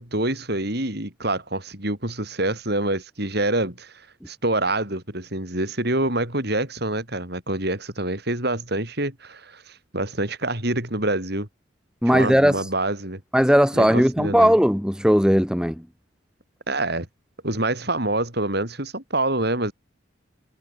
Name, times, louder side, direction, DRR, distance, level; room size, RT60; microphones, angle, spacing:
voice 1, 0.0-3.9 4.3-11.5 12.1-13.2 13.7-14.5 16.7-17.1 17.4-19.7, right 2 dB, 55° right, 7.6 m, -26 dB
voice 2, 12.0-12.6 13.3-15.8, equal, 5° right, 4.4 m, -18 dB
head